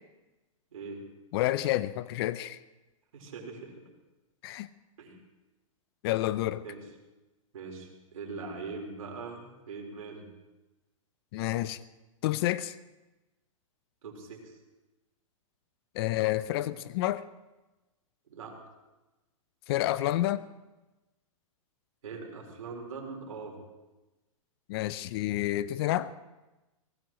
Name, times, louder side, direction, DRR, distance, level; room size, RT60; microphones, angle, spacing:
voice 1, 0.7-1.0 3.1-3.8 5.0-5.2 6.6-6.8 7.5-10.3 14.0-14.6 18.3-18.6 22.0-23.6, right 4 dB, 75° right, 1 dB, 4.4 m, -41 dB
voice 2, 1.3-2.6 4.4-4.7 6.0-6.6 11.3-11.8 12.2-12.7 15.9-17.3 19.7-20.4 24.7-26.1, left 15 dB, 45° left, 16 dB, 0.6 m, -29 dB
23.5 x 18.5 x 3.1 m, 1.1 s
hypercardioid pair, 140°, 17 cm